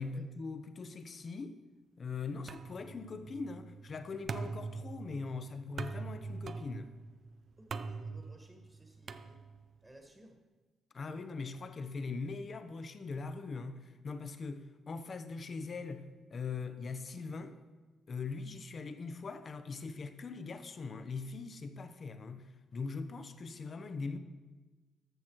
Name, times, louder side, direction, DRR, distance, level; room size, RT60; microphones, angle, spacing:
voice 1, 0.0-1.6 2.0-6.9 10.9-17.6 18.1-24.2, left 4 dB, 45° left, 0.8 m, -41 dB
sound 1, 2.5-9.8, right 4 dB, 50° right, 0.5 m, -43 dB
voice 2, 7.6-9.5 9.8-10.4, right 1 dB, 15° right, 1.6 m, -58 dB
13.5 x 6.2 x 4.6 m
cardioid pair, 90°, 0 cm